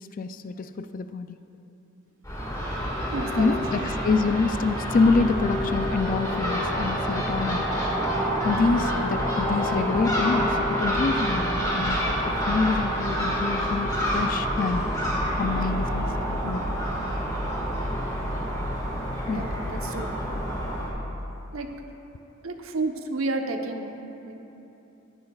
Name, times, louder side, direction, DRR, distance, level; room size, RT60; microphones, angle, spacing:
voice 1, 0.2-1.4 3.3-7.7 8.4-14.8 15.4-16.6 17.9-18.0 19.3-19.4, left 4 dB, 40° left, 10 dB, 0.3 m, -26 dB
Crow / Gull seagull, 2.2-20.9, equal, 20° left, 1.8 m, -27 dB
voice 2, 3.1-3.5 3.7-4.0 19.3-20.1 21.5-21.7 22.4-24.4, right 2 dB, 85° right, 4 dB, 0.9 m, -31 dB
20.5 x 9.5 x 2.4 m, 2.9 s
head